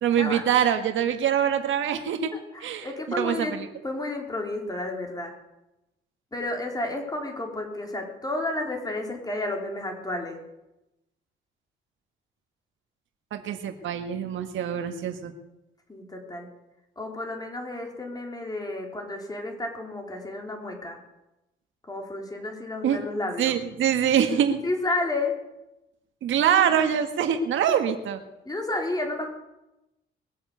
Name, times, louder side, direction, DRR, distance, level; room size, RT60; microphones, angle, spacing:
voice 1, 0.0-2.3 2.6-2.9 3.2-3.7 13.3-15.3 22.8-23.0 23.4-24.6 26.2-28.2, right 9 dB, 75° right, 7 dB, 1.7 m, -24 dB
voice 2, 2.3-3.6 3.8-5.3 6.3-10.4 15.9-16.5 17.0-21.0 21.8-23.5 24.6-25.3 27.7-27.8 28.4-29.3, left 2 dB, 20° left, 2 dB, 4.4 m, -31 dB
21.5 x 8.0 x 8.2 m, 0.93 s
cardioid pair, 90°, 20 cm